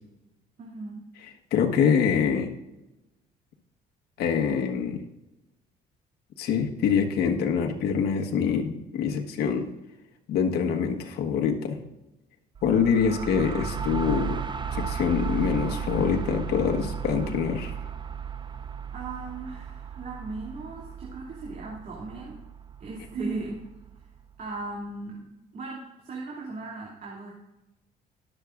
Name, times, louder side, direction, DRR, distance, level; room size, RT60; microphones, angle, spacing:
voice 1, 0.6-1.0 13.0-13.1 18.9-22.4 22.8-23.6 24.4-25.3 25.5-27.3, right 3 dB, 50° right, -4 dB, 2.8 m, -37 dB
voice 2, 1.5-2.5 4.2-5.0 6.4-9.7 10.3-11.8 12.6-14.4 14.7-17.8, left 7 dB, 70° left, 3 dB, 1.5 m, -25 dB
sound 1, 12.5-24.2, right 7 dB, 25° right, 0.6 m, -35 dB
21.5 x 7.3 x 2.6 m, 0.97 s
cardioid pair, 110°, 17 cm